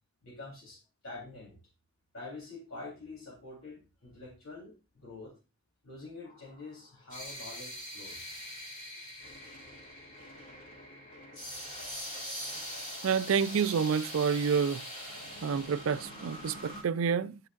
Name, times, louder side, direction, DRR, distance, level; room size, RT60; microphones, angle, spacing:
voice 1, 0.2-1.6 2.1-5.3 5.8-8.4, left 3 dB, 85° left, 3.4 m, -46 dB
sound 1, 6.2-16.8, equal, 40° left, 3.1 m, -43 dB
voice 2, 13.0-14.9 15.4-17.4, right 6 dB, 85° right, 0.4 m, -28 dB
10.5 x 6.2 x 2.5 m
head